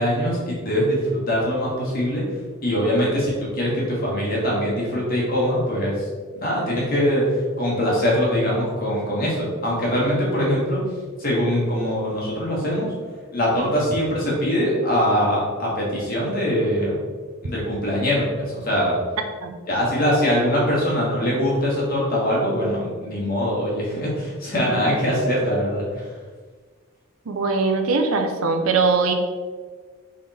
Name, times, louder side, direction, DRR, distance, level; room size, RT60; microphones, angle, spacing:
voice 1, 0.0-2.2 2.6-6.0 6.3-10.8 11.2-12.9 13.3-17.0 17.4-19.0 19.7-25.8, equal, 45° left, -5 dB, 1.5 m, -22 dB
voice 2, 27.3-29.1, right 4 dB, 80° right, 5 dB, 0.6 m, -21 dB
3.8 x 3.4 x 4.0 m, 1.5 s
head